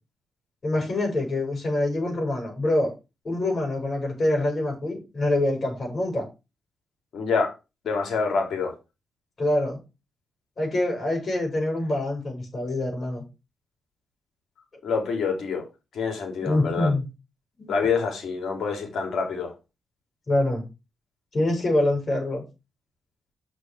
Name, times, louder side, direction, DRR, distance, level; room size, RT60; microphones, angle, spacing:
voice 1, 0.6-2.9 3.2-6.2 9.4-9.8 10.6-13.2 16.4-17.1 17.6-17.7 20.3-20.6 21.3-22.4, left 1 dB, 50° left, 6.1 m, -25 dB
voice 2, 7.1-7.5 7.8-8.7 14.8-15.7 15.9-16.9 17.7-19.5, left 5 dB, 70° left, 3.9 m, -26 dB
6.7 x 6.6 x 6.2 m
cardioid pair, 60°, 0 cm